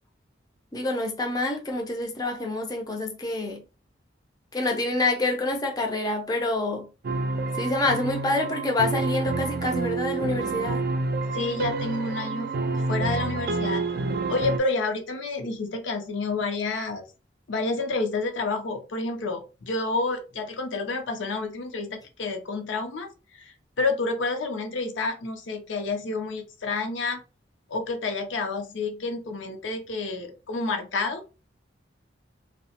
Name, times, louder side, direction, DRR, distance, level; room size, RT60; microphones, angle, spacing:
voice 1, 0.7-3.6 4.5-6.9 7.6-10.8, left 2 dB, 20° left, 0.4 m, -27 dB
sound 1, 7.0-14.6, right 3 dB, 50° right, 0.3 m, -28 dB
voice 2, 11.3-12.5 12.9-13.9 14.3-17.0 17.5-27.2 27.7-31.2, left 3 dB, 80° left, 0.6 m, -29 dB
2.7 x 2.1 x 2.8 m
head